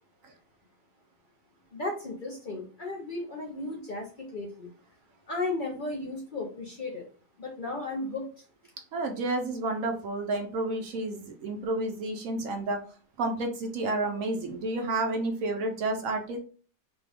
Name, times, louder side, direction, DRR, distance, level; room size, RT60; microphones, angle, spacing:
voice 1, 1.7-4.7 5.3-7.0 7.4-8.3, left 2 dB, 40° left, 0 dB, 0.8 m, -35 dB
voice 2, 8.9-12.8 13.2-16.4, right 2 dB, 65° right, 3 dB, 1.1 m, -30 dB
4.1 x 2.4 x 3.5 m, 0.39 s
omnidirectional pair, 1.6 m